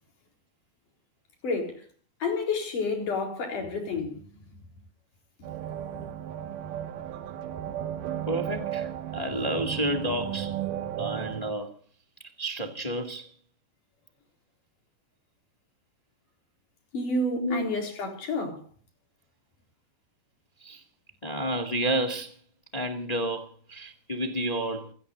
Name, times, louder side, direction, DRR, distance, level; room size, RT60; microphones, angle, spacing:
voice 1, 1.4-1.8 2.2-4.2 5.9-6.1 16.9-18.6, left 3 dB, 50° left, 5.5 m, -30 dB
sound 1, 5.4-11.5, right 11 dB, 65° right, 2.4 m, -34 dB
voice 2, 8.3-10.5 10.9-11.7 12.4-13.3 17.3-17.7 20.6-20.8 21.2-22.3 22.7-24.9, right 1 dB, 20° left, 0.9 m, -30 dB
29.5 x 17.5 x 2.7 m
omnidirectional pair, 4.9 m